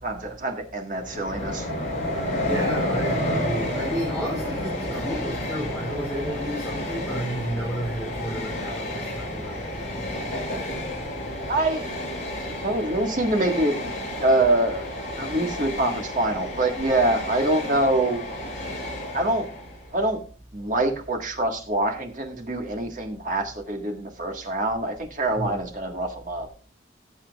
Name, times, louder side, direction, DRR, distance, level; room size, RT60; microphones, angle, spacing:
voice 1, 0.0-1.7 11.5-11.9 12.5-13.9 14.2-14.9 15.2-18.2 19.1-19.5 19.9-20.2 20.5-26.5, right 1 dB, 45° right, 1.7 m, -25 dB
Train, 1.0-19.9, left 1 dB, 40° left, 5.8 m, -31 dB
voice 2, 2.4-10.3 25.4-25.6, equal, 5° right, 3.3 m, -32 dB
18.5 x 7.4 x 2.4 m
head